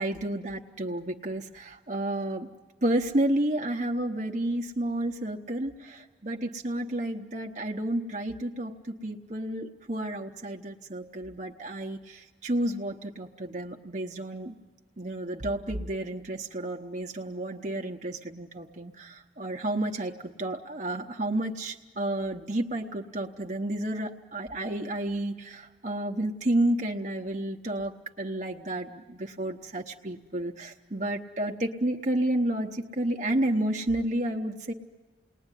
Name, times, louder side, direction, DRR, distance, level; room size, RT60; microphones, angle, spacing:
voice 1, 0.0-2.5 2.8-14.5 15.0-34.7, right 1 dB, 40° right, 2 dB, 0.9 m, -31 dB
29.0 x 20.0 x 9.9 m, 1.3 s
head